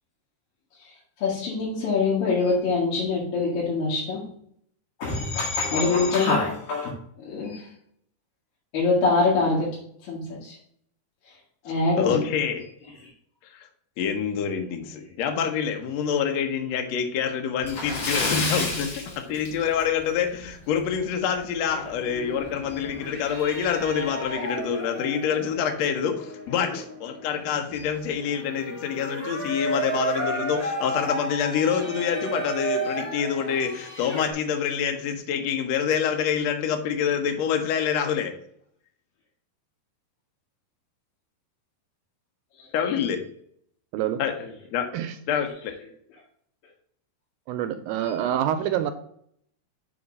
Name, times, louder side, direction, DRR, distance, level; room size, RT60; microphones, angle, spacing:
voice 1, 1.2-4.2 5.0-7.7 8.7-9.8 10.1-10.6 11.6-12.3 26.7-26.8 42.6-42.7 48.0-48.1, left 3 dB, 65° left, -6 dB, 3.2 m, -24 dB
voice 2, 12.0-12.6 13.5-13.7 14.0-38.3 42.7-43.2 44.2-44.8 45.3-45.5, left 7 dB, 85° left, 4 dB, 1.5 m, -26 dB
Splash splatter, 17.6-20.0 20.3-20.5 20.9-21.0 22.5-22.6 22.9-23.0 23.6-23.9, left 2 dB, 50° left, 3.0 m, -29 dB
sound 1, 21.8-34.3, right 2 dB, 15° left, 0.6 m, -33 dB
voice 3, 47.5-48.9, right 10 dB, 80° right, 9 dB, 2.2 m, -26 dB
7.0 x 3.6 x 5.3 m, 0.67 s
omnidirectional pair, 4.4 m